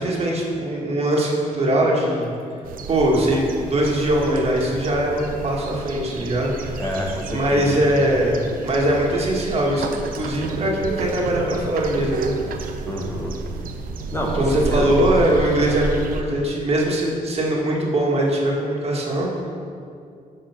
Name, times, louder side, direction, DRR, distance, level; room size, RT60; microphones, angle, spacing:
voice 1, 0.0-2.3 2.9-6.8 7.3-12.3 14.3-19.5, right 1 dB, 45° right, -2 dB, 2.0 m, -21 dB
sound 1, 2.6-16.2, right 4 dB, 70° right, 0.8 m, -31 dB
voice 2, 6.8-7.7 12.8-13.4 14.1-14.4 14.7-14.9, left 1 dB, 20° left, -2 dB, 1.6 m, -27 dB
10.0 x 4.8 x 5.8 m, 2.4 s
cardioid pair, 95°, 15 cm